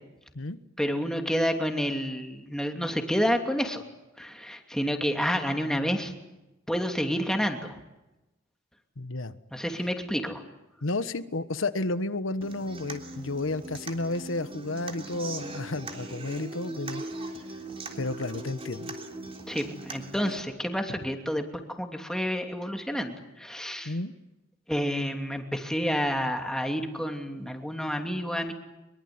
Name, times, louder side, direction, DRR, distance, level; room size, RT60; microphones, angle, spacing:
voice 1, 0.8-3.8 4.2-6.1 6.7-7.8 9.5-10.4 19.5-21.5 21.8-23.9 24.7-28.5, equal, 5° left, 4 dB, 2.8 m, -29 dB
voice 2, 9.0-9.4 10.8-17.0 18.0-19.0 20.9-21.0 23.8-24.1, left 2 dB, 80° left, 12 dB, 1.3 m, -32 dB
Human voice / Acoustic guitar, 12.4-20.4, right 2 dB, 30° right, 3.4 m, -40 dB
24.0 x 23.0 x 9.6 m, 1.0 s
head